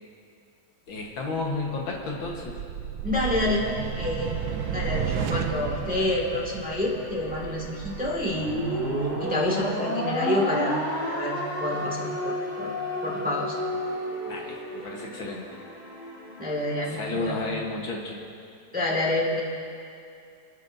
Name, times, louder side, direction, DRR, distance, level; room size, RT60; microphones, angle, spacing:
voice 1, 0.9-2.6 14.3-15.6 16.9-18.2, left 3 dB, 75° left, -1 dB, 2.1 m, -32 dB
sound 1, 1.4-9.6, right 9 dB, 85° right, 1.5 m, -34 dB
voice 2, 3.0-3.7 4.0-4.4 4.7-8.7 9.2-12.7 13.0-13.6 16.4-17.4 18.7-19.4, left 2 dB, 5° right, -3 dB, 1.8 m, -28 dB
sound 2, 3.3-17.0, left 2 dB, 90° left, 5.0 m, -44 dB
sound 3, 8.3-14.8, equal, 55° left, 3.4 m, -30 dB
29.5 x 10.0 x 2.7 m, 2.4 s
omnidirectional pair, 2.2 m